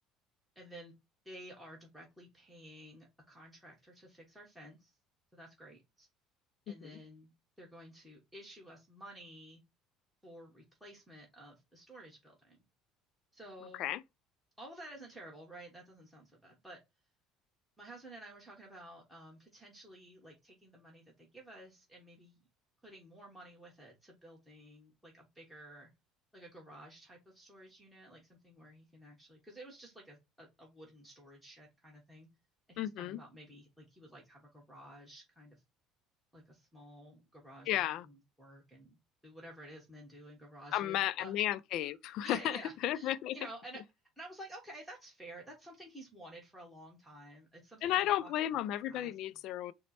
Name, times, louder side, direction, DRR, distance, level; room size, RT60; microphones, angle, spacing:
voice 1, 0.5-0.9 1.2-4.9 5.3-6.1 6.7-7.3 7.6-9.6 10.2-12.6 13.3-13.9 14.6-16.8 17.8-22.4 22.8-25.9 26.3-32.3 32.7-35.6 36.3-39.0 39.2-41.3 42.2-43.8 44.2-48.6 48.9-49.1, right 1 dB, ahead, 1.2 m, -52 dB
voice 2, 6.7-7.0 13.8-14.0 32.8-33.2 37.7-38.1 40.7-43.4 47.8-49.7, left 13 dB, 60° left, 0.3 m, -33 dB
4.3 x 2.1 x 4.1 m
cardioid pair, 130°, 0 cm